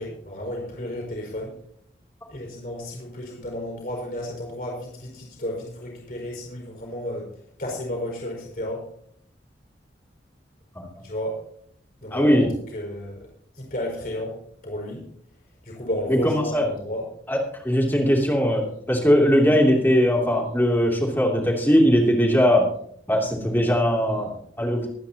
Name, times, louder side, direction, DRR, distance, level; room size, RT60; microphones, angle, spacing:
voice 1, 0.0-1.5 2.3-7.3 7.6-8.8 11.0-11.4 12.0-12.4 12.7-13.2 13.5-14.3 14.6-15.0 15.6-17.1, left 1 dB, 50° left, -1 dB, 4.5 m, -32 dB
voice 2, 12.1-12.5 16.1-16.7 17.3-17.4 17.6-22.7 23.1-24.9, equal, 10° left, -1 dB, 2.8 m, -20 dB
24.0 x 9.1 x 2.9 m, 0.66 s
head